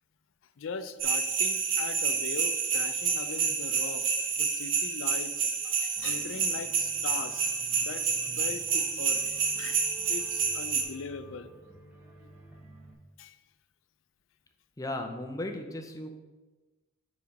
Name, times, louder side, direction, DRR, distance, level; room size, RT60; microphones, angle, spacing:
voice 1, 0.6-8.1 8.4-9.2 9.6-11.5 12.2-12.3 13.2-13.4, left 5 dB, 80° left, 11 dB, 0.4 m, -40 dB
sound 1, 1.0-10.8, right 5 dB, 75° right, 0.9 m, -29 dB
sound 2, 6.0-12.9, right 1 dB, 5° right, 0.9 m, -51 dB
voice 2, 14.8-16.1, left 1 dB, 15° left, 5 dB, 0.5 m, -36 dB
5.0 x 4.8 x 5.3 m, 1.2 s
head